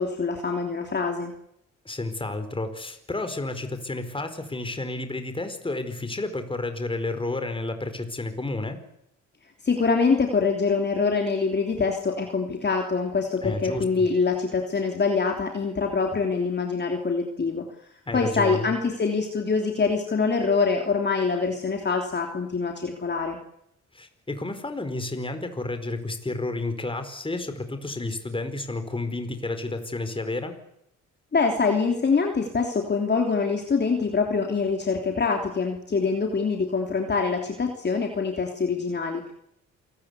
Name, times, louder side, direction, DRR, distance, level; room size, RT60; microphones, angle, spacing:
voice 1, 0.0-1.3 9.6-17.6 18.1-23.4 31.3-39.3, left 4 dB, 35° left, 3 dB, 3.2 m, -24 dB
voice 2, 1.8-8.8 13.4-14.1 18.1-18.7 23.9-30.6, left 2 dB, 15° left, 8 dB, 4.6 m, -31 dB
28.0 x 19.0 x 8.4 m, 0.78 s
cardioid pair, 90°, 30 cm